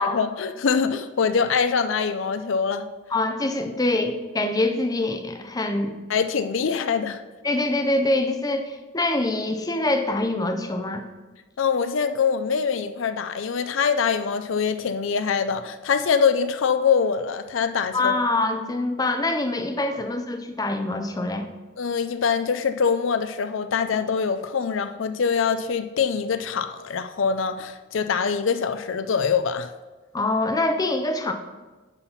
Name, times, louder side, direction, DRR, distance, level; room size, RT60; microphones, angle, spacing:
voice 1, 0.0-2.8 6.1-7.2 11.6-18.1 21.8-29.7, left 6 dB, 70° left, 10 dB, 0.5 m, -24 dB
voice 2, 3.1-6.0 7.4-11.0 17.9-21.5 30.1-31.3, left 2 dB, 20° left, 6 dB, 0.6 m, -24 dB
9.8 x 4.1 x 5.7 m, 1.3 s
head